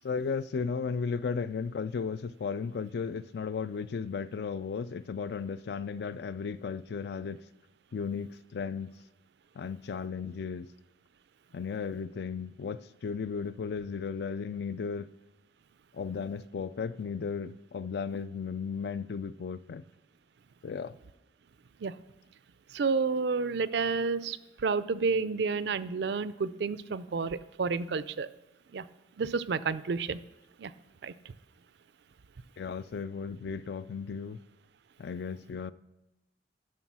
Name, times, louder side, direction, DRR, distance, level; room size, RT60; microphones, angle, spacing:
voice 1, 0.0-7.4 7.9-9.0 9.6-10.7 11.5-15.1 15.9-19.8 20.6-21.0 32.6-34.4 35.0-35.7, left 5 dB, 60° left, 0.3 m, -35 dB
voice 2, 22.7-28.3 28.7-28.9 29.2-30.2 30.6-30.7 31.0-31.1, right 4 dB, 65° right, 0.4 m, -30 dB
11.0 x 6.2 x 6.0 m
head